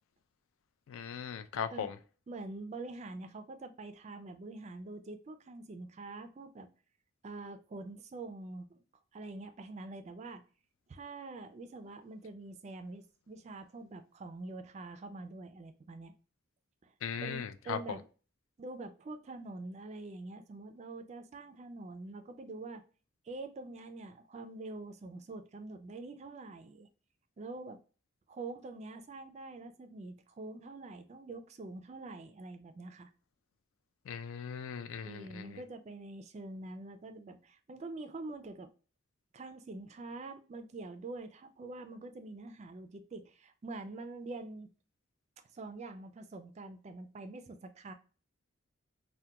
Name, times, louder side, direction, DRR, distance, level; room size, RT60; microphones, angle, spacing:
voice 1, 0.9-2.0 17.0-17.8 34.1-35.6, left 7 dB, 85° left, 0.3 m, -39 dB
voice 2, 2.3-6.7 7.2-8.8 9.1-10.4 10.9-16.1 16.8-16.9 17.2-18.0 18.6-22.8 23.2-26.9 27.4-27.8 28.3-33.1 35.0-38.7 39.3-44.7 45.5-47.9, right 2 dB, 35° right, 0.3 m, -45 dB
2.8 x 2.1 x 3.3 m
head